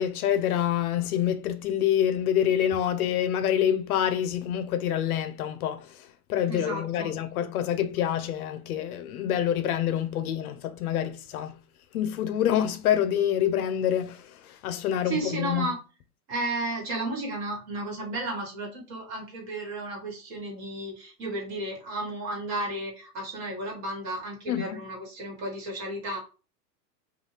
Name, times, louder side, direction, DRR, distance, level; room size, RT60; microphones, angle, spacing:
voice 1, 0.0-6.0 6.3-11.6 11.9-15.7 24.5-24.8, left 10 dB, 65° left, 0.5 m, -27 dB
voice 2, 6.5-7.1 15.0-15.8 16.3-26.2, right 2 dB, 35° right, 1.5 m, -33 dB
2.6 x 2.3 x 3.1 m
hypercardioid pair, 120°, 49 cm